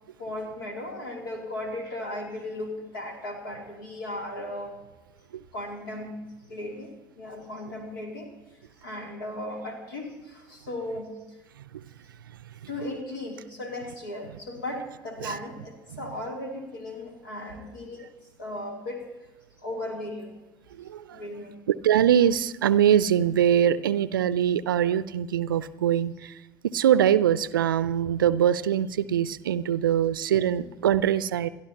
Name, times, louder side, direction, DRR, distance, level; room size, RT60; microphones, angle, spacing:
voice 1, 0.2-4.8 5.5-6.9 7.2-8.3 8.8-11.4 12.7-18.1 18.4-19.0 19.6-20.4 21.1-21.6, left 1 dB, 80° left, 1 dB, 3.0 m, -36 dB
voice 2, 20.8-21.2 21.7-26.3 26.6-31.5, right 10 dB, 80° right, 17 dB, 0.4 m, -23 dB
29.0 x 12.0 x 2.9 m, 1.1 s
figure-of-eight pair, 55°, 11 cm